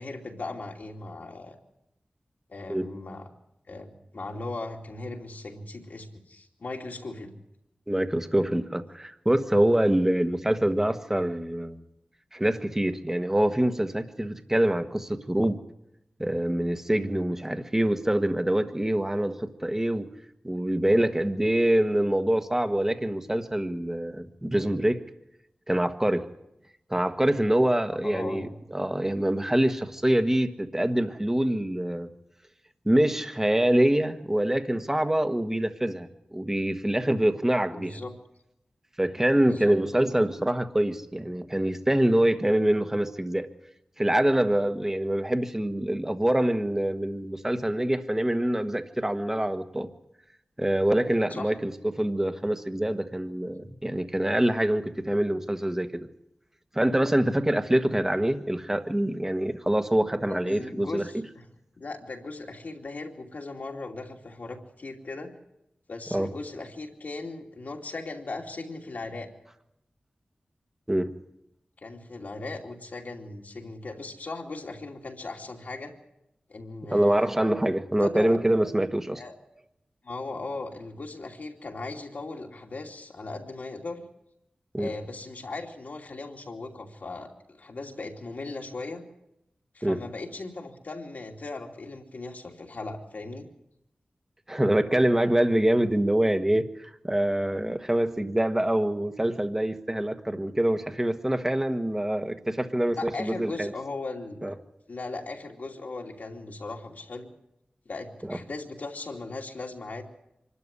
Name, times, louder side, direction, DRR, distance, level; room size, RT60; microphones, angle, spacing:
voice 1, 0.0-1.6 2.5-3.3 3.7-7.4 28.0-28.5 37.7-38.1 39.4-40.1 51.3-51.5 60.3-61.4 61.8-65.3 65.9-69.3 71.8-75.9 76.5-77.3 78.0-78.4 79.1-79.3 80.0-84.0 84.8-89.0 89.7-93.5 103.0-104.5 104.9-107.3 107.8-110.0, left 3 dB, 65° left, 2 dB, 2.8 m, -38 dB
voice 2, 7.9-11.8 12.3-15.6 16.2-20.1 20.4-25.0 25.7-26.3 26.9-32.1 32.8-38.0 39.0-43.5 44.0-49.9 50.6-56.1 56.7-61.1 66.1-66.3 70.9-71.1 76.9-79.2 84.7-84.9 89.8-90.0 94.5-103.7 104.4-104.5 108.3-108.4, right 1 dB, 15° right, 8 dB, 1.3 m, -25 dB
25.5 x 12.5 x 9.8 m, 0.85 s
wide cardioid pair, 100°, 3 cm